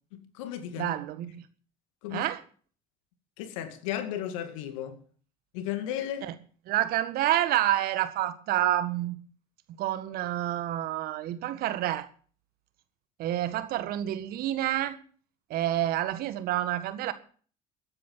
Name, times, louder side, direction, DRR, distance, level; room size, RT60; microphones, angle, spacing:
voice 1, 0.1-0.9 2.0-2.3 3.4-5.0 5.5-6.3, left 11 dB, 80° left, 2.2 m, -34 dB
voice 2, 0.8-1.5 2.1-2.4 6.2-6.4 6.7-9.2 9.7-12.1 13.2-15.0 15.5-17.1, right 13 dB, 65° right, 1.6 m, -28 dB
14.5 x 9.8 x 7.4 m
hypercardioid pair, 65°, 17 cm